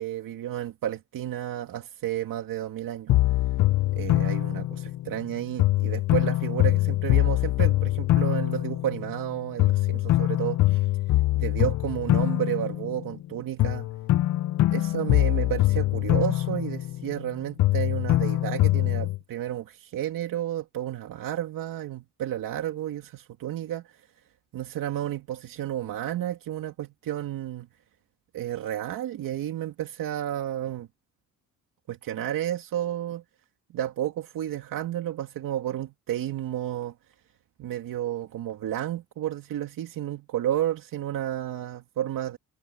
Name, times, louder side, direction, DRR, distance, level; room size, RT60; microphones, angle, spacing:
voice 1, 0.0-3.1 3.9-10.9 11.3-13.9 14.7-24.1 24.5-27.7 28.3-30.9 31.9-33.2 33.7-36.9 37.6-42.4, right 12 dB, 80° right, 2.3 m, -31 dB
sound 1, 3.1-5.2 5.6-9.3 9.6-13.3 13.6-17.3 17.6-19.2, left 16 dB, 60° left, 0.5 m, -24 dB
cardioid pair, 130°, 33 cm